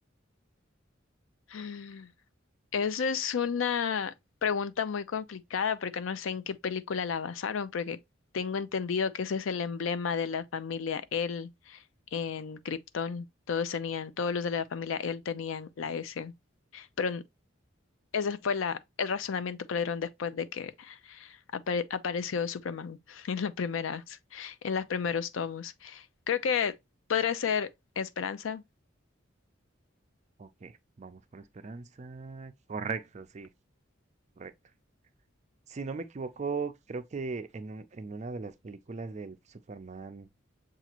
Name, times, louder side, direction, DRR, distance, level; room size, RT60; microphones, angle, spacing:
voice 1, 1.5-2.1 2.7-4.1 4.4-8.0 8.3-11.8 12.1-16.3 16.7-17.2 18.1-26.7 27.1-27.7 28.0-28.6, left 6 dB, 80° left, 0.4 m, -32 dB
voice 2, 30.4-33.5 34.4-34.5 35.7-40.3, right 4 dB, 35° right, 0.4 m, -39 dB
7.0 x 2.4 x 2.9 m
head